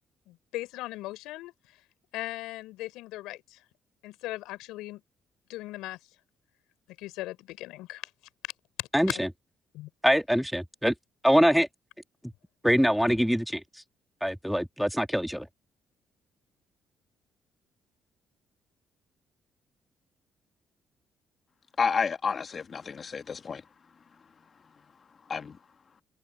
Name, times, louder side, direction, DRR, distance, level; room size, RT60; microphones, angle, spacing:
voice 1, 0.3-1.8 2.1-3.6 4.0-5.0 5.5-6.0 7.0-8.1 8.8-9.2 9.7-9.9, left 17 dB, 75° left, 4.6 m, -38 dB
voice 2, 8.9-9.3 10.0-10.9 11.2-11.7 12.6-13.6 14.2-15.5, equal, ahead, 2.9 m, -23 dB
voice 3, 21.8-23.6 25.3-25.5, left 5 dB, 45° left, 1.7 m, -30 dB
hypercardioid pair, 50°, 0 cm